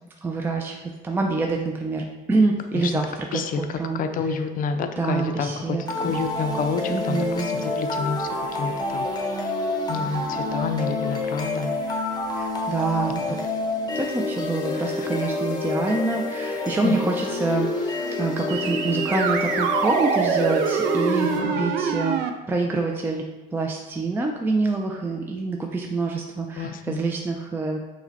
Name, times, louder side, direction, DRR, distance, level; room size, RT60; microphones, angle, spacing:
voice 1, 0.2-4.0 5.0-6.1 6.9-7.5 12.4-13.4 14.0-23.2 23.5-27.8, right 3 dB, 15° right, 1 dB, 0.3 m, -26 dB
voice 2, 3.3-9.1 9.9-11.7 13.3-13.4 14.8-15.1 16.8-17.0 21.2-21.7 26.6-27.0, left 5 dB, 55° left, 8 dB, 0.4 m, -29 dB
sound 1, 5.9-21.9, left 2 dB, 25° left, 0.7 m, -28 dB
sound 2, 18.5-22.3, right 7 dB, 90° right, 0.4 m, -25 dB
4.7 x 2.2 x 4.0 m, 1.1 s
cardioid pair, 110°, 17 cm